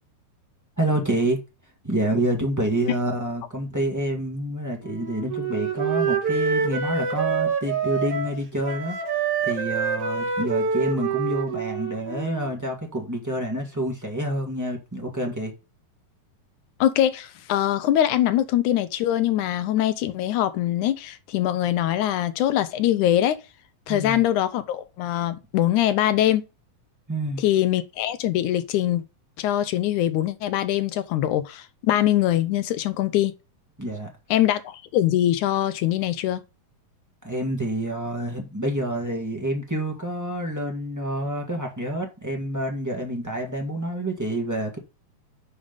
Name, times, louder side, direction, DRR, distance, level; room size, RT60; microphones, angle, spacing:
voice 1, 0.8-1.4 1.8-9.0 9.4-15.5 23.9-24.2 27.1-27.4 33.8-34.1 37.2-44.8, right 1 dB, 25° right, 0.4 m, -27 dB
Wind instrument woodwind instrument, 4.8-12.5, right 5 dB, 50° right, 2.4 m, -26 dB
voice 2, 16.8-23.4 23.9-26.4 27.4-29.0 29.4-33.3 34.3-36.4, left 12 dB, 75° left, 1.9 m, -23 dB
7.1 x 5.5 x 5.1 m
omnidirectional pair, 4.0 m